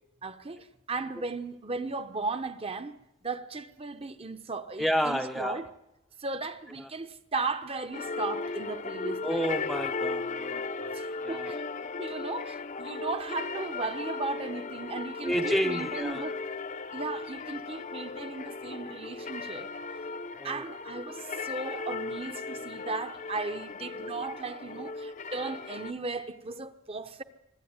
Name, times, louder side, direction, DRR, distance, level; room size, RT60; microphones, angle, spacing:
voice 1, 0.2-3.0 3.2-5.7 6.2-9.4 10.9-11.6 12.0-16.4 16.9-19.7 20.4-27.2, right 3 dB, 30° right, 1.0 m, -36 dB
voice 2, 4.8-5.6 6.8-6.9 9.2-10.9 11.2-11.6 15.2-16.2 20.4-20.6, equal, ahead, 0.7 m, -30 dB
sound 1, 7.9-25.9, left 4 dB, 35° left, 0.7 m, -36 dB
25.0 x 12.5 x 9.7 m
head